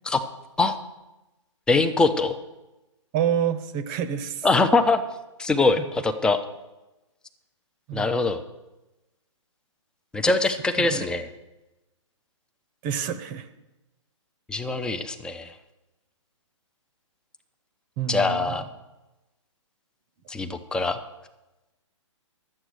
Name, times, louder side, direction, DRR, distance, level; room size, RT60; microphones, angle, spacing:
voice 1, 1.7-2.4 4.4-5.0 5.4-6.4 7.9-8.4 10.1-11.2 14.5-15.5 18.1-18.6 20.3-21.0, left 3 dB, 5° left, 9 dB, 0.6 m, -23 dB
voice 2, 3.1-4.5 5.8-5.9 7.9-8.2 10.8-11.1 12.8-13.5 18.0-18.6, right 8 dB, 30° right, 11 dB, 0.8 m, -28 dB
11.5 x 7.8 x 6.4 m, 1.0 s
figure-of-eight pair, 130°, 16 cm